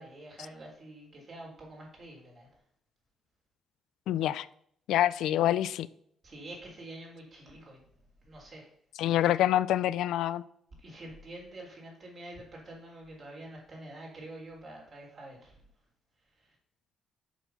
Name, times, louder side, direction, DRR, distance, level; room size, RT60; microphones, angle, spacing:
voice 1, 0.0-2.5 6.2-7.8 8.2-8.7 10.8-15.6, right 1 dB, 45° right, -2 dB, 3.9 m, -47 dB
voice 2, 4.1-4.5 4.9-5.9 9.0-10.4, left 12 dB, 85° left, 17 dB, 0.3 m, -26 dB
7.2 x 5.5 x 5.7 m, 0.68 s
cardioid pair, 90°, 0 cm